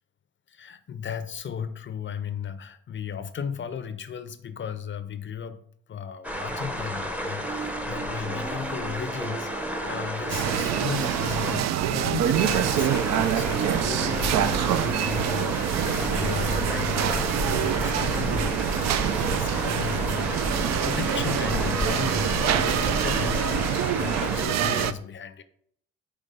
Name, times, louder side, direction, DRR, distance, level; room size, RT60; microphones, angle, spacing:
voice 1, 0.5-5.6 5.9-25.4, left 8 dB, 40° left, 12 dB, 0.5 m, -35 dB
sound 1, 6.2-11.6 12.3-24.5, equal, 5° right, 0.7 m, -31 dB
Singing, 7.4-24.1, right 2 dB, 35° right, 1.2 m, -39 dB
sound 2, 10.3-24.9, right 10 dB, 65° right, 0.4 m, -26 dB
5.4 x 3.4 x 5.2 m, 0.66 s
supercardioid pair, 70°, 29 cm